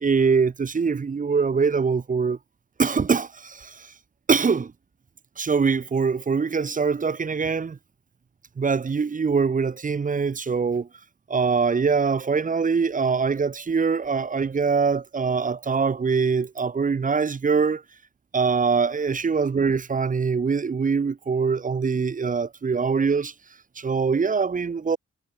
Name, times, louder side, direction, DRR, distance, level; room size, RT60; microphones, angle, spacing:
voice 1, 0.0-2.4 2.8-3.9 4.3-4.7 5.4-7.8 8.6-10.9 11.3-17.8 18.3-23.3 23.8-25.0, right 5 dB, 25° right, 0.8 m, -23 dB
wide cardioid pair, 175°, 30 cm